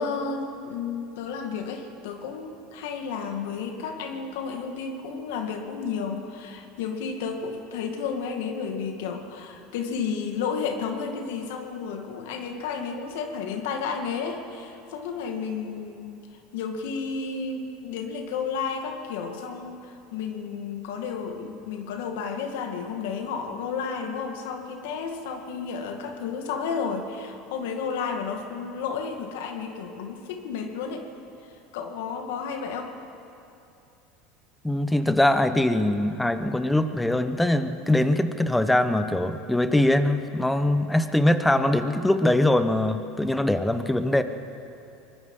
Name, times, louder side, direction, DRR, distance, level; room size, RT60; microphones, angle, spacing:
voice 1, 0.0-16.3 16.5-31.1 31.7-32.9, left 5 dB, 80° left, 4 dB, 2.1 m, -32 dB
voice 2, 34.6-44.2, left 1 dB, 5° left, 10 dB, 1.1 m, -22 dB
24.5 x 20.0 x 5.6 m, 2.8 s
supercardioid pair, 105°, 0 cm